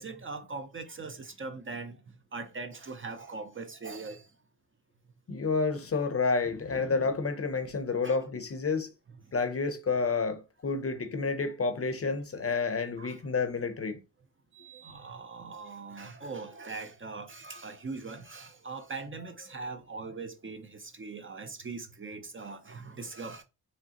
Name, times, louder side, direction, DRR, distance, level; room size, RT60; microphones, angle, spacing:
voice 1, 0.0-2.0 2.3-4.3 7.9-8.2 9.1-9.2 12.4-12.6 13.0-13.2 14.5-23.4, right 4 dB, 35° right, 0.5 m, -41 dB
voice 2, 5.3-8.9 9.3-14.0, left 4 dB, 40° left, 0.6 m, -30 dB
5.0 x 3.0 x 2.8 m
wide cardioid pair, 155°, 36 cm